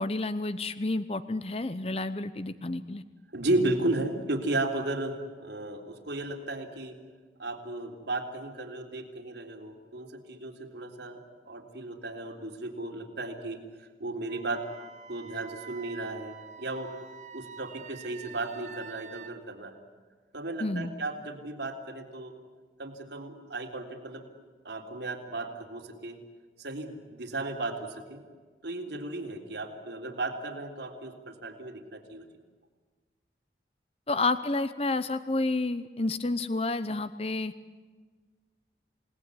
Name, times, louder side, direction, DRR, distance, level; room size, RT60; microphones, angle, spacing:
voice 1, 0.0-3.0 20.6-20.9 34.1-37.5, left 2 dB, 35° left, 12 dB, 0.8 m, -30 dB
voice 2, 3.3-7.0 7.4-14.7 15.1-16.9 17.3-19.8 20.3-22.4 22.8-24.2 24.6-26.2 26.6-28.2 28.6-32.3, right 2 dB, 85° right, 3 dB, 3.7 m, -34 dB
Wind instrument woodwind instrument, 14.3-19.3, right 6 dB, 40° right, 1.6 m, -47 dB
29.5 x 18.5 x 9.9 m, 1.5 s
head